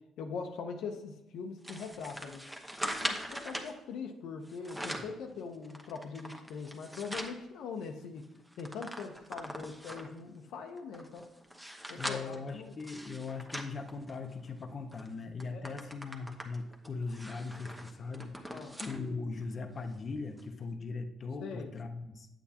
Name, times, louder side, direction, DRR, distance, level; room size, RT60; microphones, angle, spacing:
voice 1, 0.2-2.5 2.8-8.3 8.6-11.3 11.9-12.8 15.5-15.8 18.5-18.7 21.4-21.7, left 5 dB, 85° left, 4 dB, 0.7 m, -42 dB
sound 1, 1.6-3.7 4.5-5.2 5.6-7.4 7.8-7.9 8.2-10.2 10.8-14.5 14.9-15.1 15.4-19.0 19.4-19.5 20.4-20.5, equal, 10° right, 1.0 m, -41 dB
voice 2, 12.0-22.3, left 4 dB, 45° left, 6 dB, 0.7 m, -40 dB
8.3 x 7.9 x 2.9 m, 0.92 s
cardioid pair, 90°, 0 cm